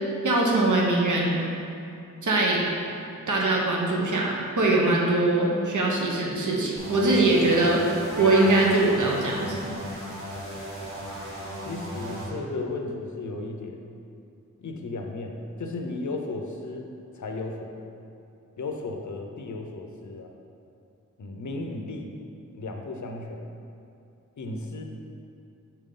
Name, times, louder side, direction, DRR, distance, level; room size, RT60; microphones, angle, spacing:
voice 1, 0.2-1.4 2.2-2.7 3.3-7.8 8.2-9.6, right 2 dB, 70° right, -2 dB, 0.9 m, -22 dB
sound 1, 6.8-12.3, equal, 40° right, 1.5 m, -36 dB
Meow, 8.0-8.8, right 1 dB, 10° left, 0.3 m, -35 dB
voice 2, 11.7-13.8 14.6-18.0 18.6-20.3 21.2-22.1 22.5-23.5 24.4-24.8, left 2 dB, 65° left, 2 dB, 0.7 m, -35 dB
6.7 x 4.4 x 3.8 m, 2.6 s
wide cardioid pair, 70°, 32 cm